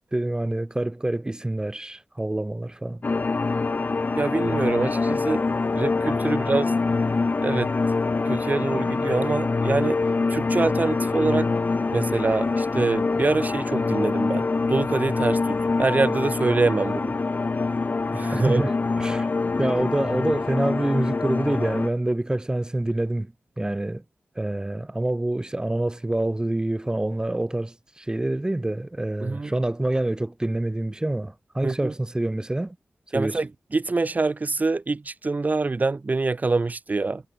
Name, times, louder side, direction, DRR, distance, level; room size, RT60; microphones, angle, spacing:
voice 1, 0.1-3.0 18.3-18.7 19.0-19.3 19.6-24.0 24.4-32.8 33.1-33.4, right 1 dB, 20° right, 4.2 m, -26 dB
sound 1, 3.0-21.9, left 3 dB, 45° left, 2.0 m, -25 dB
voice 2, 4.1-5.4 5.8-6.7 7.4-7.7 8.2-10.0 10.3-11.5 11.9-17.1 18.1-18.6 29.2-29.5 31.6-31.9 33.1-37.2, right 3 dB, 40° right, 6.6 m, -25 dB
wide cardioid pair, 85°, 4 cm